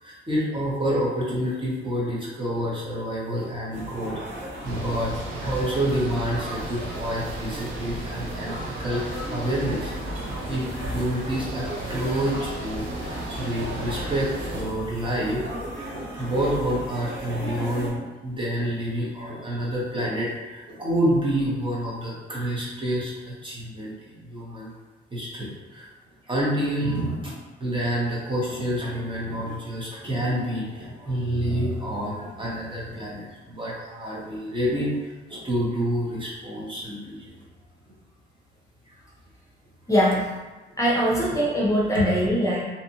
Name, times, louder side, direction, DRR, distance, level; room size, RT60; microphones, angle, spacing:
voice 1, 0.0-9.9 10.4-10.6 10.9-15.5 15.8-23.1 23.4-24.7 25.1-25.9 26.3-27.3 27.6-34.9 35.3-37.3 41.9-42.0, equal, 25° right, -6 dB, 1.0 m, -28 dB
sound 1, 3.7-17.9, equal, 65° right, 1.2 m, -36 dB
sound 2, 4.6-14.6, right 2 dB, 85° right, 0.6 m, -35 dB
voice 2, 39.9-40.3 40.8-42.6, equal, 15° left, -6 dB, 0.7 m, -22 dB
2.7 x 2.4 x 2.7 m, 1.2 s
cardioid pair, 90°, 20 cm